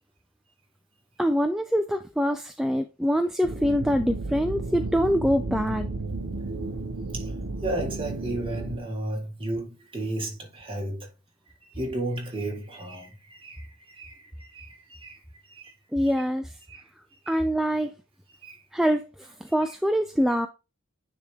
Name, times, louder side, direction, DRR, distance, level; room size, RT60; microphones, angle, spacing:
voice 1, 1.2-5.9 15.9-16.6 17.3-17.9 18.7-20.5, equal, ahead, 0.3 m, -24 dB
sound 1, 3.4-8.8, right 2 dB, 60° right, 0.9 m, -33 dB
voice 2, 7.6-11.1 11.6-15.2 15.4-15.7 16.7-16.9 17.3-17.4 18.4-18.6, right 1 dB, 25° right, 1.9 m, -34 dB
9.4 x 3.5 x 3.5 m
head